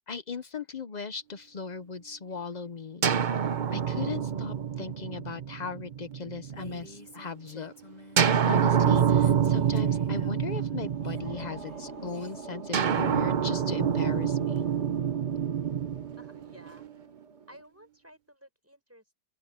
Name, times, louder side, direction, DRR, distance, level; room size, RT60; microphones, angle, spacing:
voice 1, 0.0-3.1 3.7-7.7 8.4-14.6, left 5 dB, 85° left, 0.3 m, -38 dB
sound 1, 3.0-6.8 8.2-11.7 12.7-16.9, right 8 dB, 70° right, 0.4 m, -27 dB
Female speech woman speaking, 6.4-8.3 8.6-12.4, left 3 dB, 25° left, 2.8 m, -51 dB
sound 2, 10.6-17.6, right 5 dB, 40° right, 2.0 m, -43 dB
voice 2, 16.2-17.1 17.5-19.1, equal, 10° right, 6.9 m, -54 dB
open air
omnidirectional pair, 1.8 m